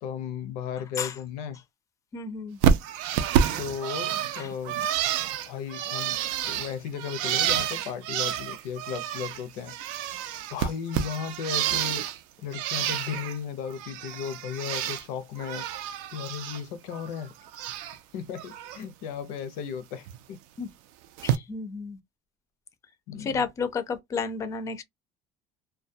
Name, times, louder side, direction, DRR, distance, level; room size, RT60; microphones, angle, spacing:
voice 1, 0.0-1.6 3.6-4.8 5.4-6.2 6.4-9.7 10.5-12.1 12.4-15.7 16.1-17.3 18.1-20.4 23.1-23.4, left 7 dB, 75° left, 0.5 m, -35 dB
voice 2, 2.1-2.6 4.4-4.5 20.6-20.7 21.2-22.0 23.2-24.8, left 5 dB, 25° left, 0.4 m, -32 dB
Bird, 2.6-9.4 9.7-12.2 12.5-13.4 13.7-15.0 15.4-16.6 16.9-18.0 18.4-18.8 20.1-20.2 21.2-21.4, right 9 dB, 85° right, 0.4 m, -29 dB
2.2 x 2.1 x 2.6 m
cardioid pair, 150°, 14 cm